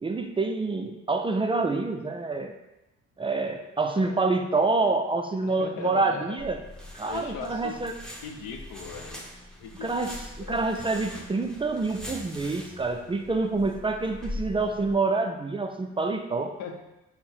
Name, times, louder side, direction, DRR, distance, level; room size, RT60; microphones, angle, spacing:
voice 1, 0.0-2.5 3.2-6.6 6.9-7.9 9.8-16.5, right 3 dB, 20° right, 4 dB, 0.3 m, -27 dB
voice 2, 3.9-4.3 5.4-6.5 7.1-7.8 8.2-9.2 9.6-10.6 12.1-12.2 16.6-16.8, left 6 dB, 85° left, 3 dB, 0.7 m, -39 dB
sound 1, 6.4-14.9, left 1 dB, ahead, 0.7 m, -42 dB
5.5 x 2.1 x 4.3 m, 0.96 s
cardioid pair, 90°, 30 cm